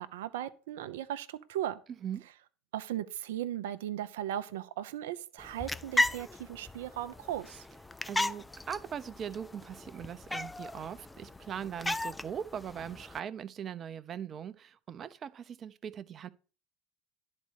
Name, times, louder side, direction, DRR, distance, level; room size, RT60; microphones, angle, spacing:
voice 1, 0.0-1.8 2.7-7.7, right 12 dB, 85° right, 0.6 m, -37 dB
sound 1, 5.4-13.2, left 2 dB, 10° left, 0.4 m, -36 dB
voice 2, 8.1-16.3, right 8 dB, 40° right, 0.7 m, -40 dB
11.0 x 4.2 x 6.4 m
hypercardioid pair, 85°, 0 cm